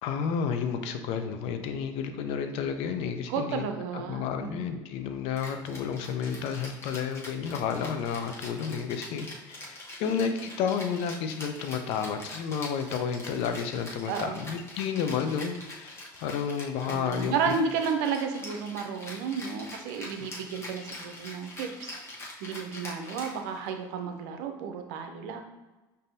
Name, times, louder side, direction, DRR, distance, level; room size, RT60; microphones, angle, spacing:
voice 1, 0.0-3.7 3.9-17.5, left 7 dB, 75° left, 7 dB, 0.5 m, -31 dB
voice 2, 3.3-4.6 14.1-14.4 16.8-21.9 22.4-25.4, right 6 dB, 85° right, 5 dB, 0.5 m, -32 dB
Rattle (instrument), 5.4-23.8, left 1 dB, 25° left, 1.1 m, -44 dB
5.4 x 2.7 x 2.6 m, 1.1 s
supercardioid pair, 90°, 10 cm